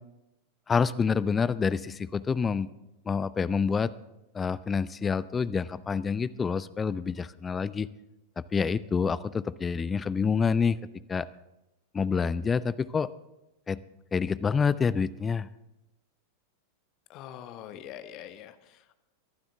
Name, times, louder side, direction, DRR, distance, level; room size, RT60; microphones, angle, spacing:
voice 1, 0.7-2.7 3.1-3.9 4.3-7.9 8.5-10.8 11.1-11.3 11.9-13.1 13.7-13.8 14.1-15.5, left 5 dB, 15° left, 17 dB, 0.5 m, -27 dB
voice 2, 17.1-19.0, left 10 dB, 40° left, 10 dB, 1.1 m, -44 dB
22.5 x 12.0 x 3.5 m, 0.94 s
figure-of-eight pair, 90°, 0 cm